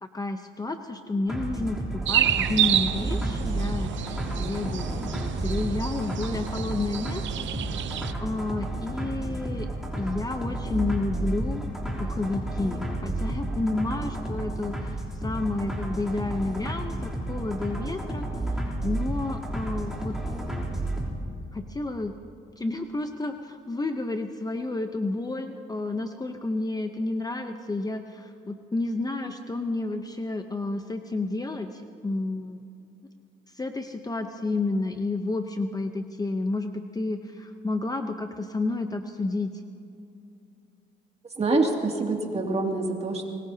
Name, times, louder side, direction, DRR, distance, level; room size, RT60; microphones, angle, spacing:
voice 1, 0.0-5.1 5.4-7.7 8.2-9.7 10.0-11.7 12.0-15.0 15.2-18.3 18.8-20.2 21.5-22.1 22.6-32.6 33.5-39.5, left 2 dB, 20° left, 6 dB, 0.8 m, -30 dB
sound 1, 1.3-21.1, right 1 dB, ahead, 3.4 m, -32 dB
sound 2, 2.1-8.1, right 11 dB, 70° right, 0.7 m, -29 dB
voice 2, 41.4-43.3, right 3 dB, 30° right, 1 dB, 2.6 m, -26 dB
24.5 x 20.5 x 2.9 m, 2.6 s
cardioid pair, 90°, 20 cm